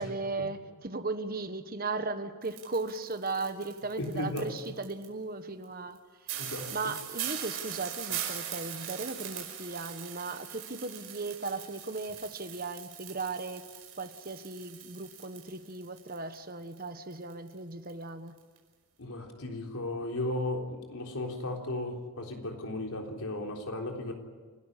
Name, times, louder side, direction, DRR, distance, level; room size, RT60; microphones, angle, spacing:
voice 1, 0.0-6.0 6.7-13.7 14.0-18.4, right 3 dB, 40° right, 9 dB, 1.3 m, -37 dB
sound 1, 2.4-5.1 5.6-5.7 6.0-6.1 6.3-16.4 16.6-17.6 17.9-18.0 18.4-18.6, right 10 dB, 65° right, 5.0 m, -41 dB
voice 2, 4.0-4.5 6.4-6.9 19.0-24.1, left 2 dB, 85° left, 2 dB, 3.7 m, -35 dB
28.5 x 13.5 x 9.9 m, 1.4 s
head